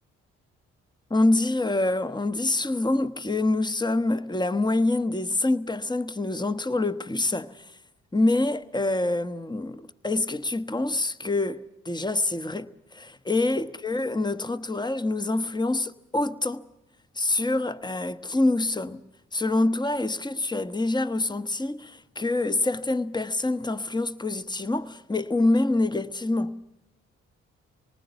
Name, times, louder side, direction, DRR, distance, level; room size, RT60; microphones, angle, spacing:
voice 1, 1.1-7.7 8.1-16.6 17.1-19.0 19.3-26.6, left 2 dB, 15° left, 1.1 m, -26 dB
26.5 x 19.5 x 7.0 m
supercardioid pair, 50°, 31 cm